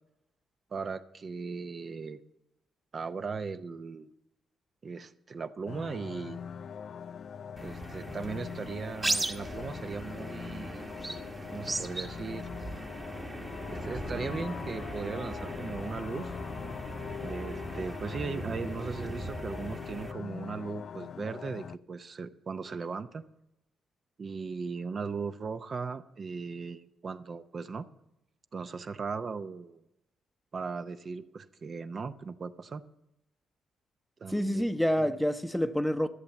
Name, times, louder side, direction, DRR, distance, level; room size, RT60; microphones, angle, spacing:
voice 1, 0.7-2.2 2.9-4.1 4.8-6.4 7.6-10.9 11.5-12.5 13.7-16.4 17.2-23.2 24.2-27.9 28.5-29.8 30.5-32.8 34.2-34.7 35.0-35.1, right 5 dB, 40° right, 0.6 m, -38 dB
sound 1, 5.7-21.8, left 7 dB, 55° left, 0.3 m, -42 dB
sound 2, 7.6-20.1, right 2 dB, 20° right, 1.2 m, -38 dB
voice 2, 34.3-36.1, equal, ahead, 0.8 m, -28 dB
13.5 x 7.2 x 7.0 m
cardioid pair, 90°, 0 cm